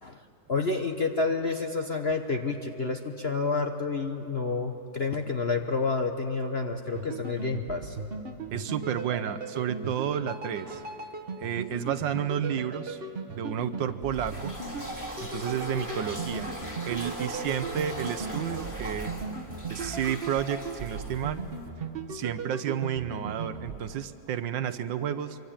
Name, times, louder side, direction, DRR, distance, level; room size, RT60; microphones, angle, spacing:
voice 1, 0.0-8.0 10.7-10.8 19.5-19.9, left 4 dB, 45° left, 4 dB, 0.9 m, -30 dB
sound 1, 6.9-23.8, right 4 dB, 35° right, 1.2 m, -38 dB
voice 2, 8.5-10.8 11.4-13.0 13.3-14.5 15.2-16.5 16.8-19.2 19.7-21.4 22.1-25.4, right 9 dB, 70° right, 12 dB, 1.5 m, -31 dB
sound 2, 14.0-21.7, equal, 10° left, 2.9 m, -40 dB
25.0 x 23.5 x 8.7 m, 2.8 s
omnidirectional pair, 2.2 m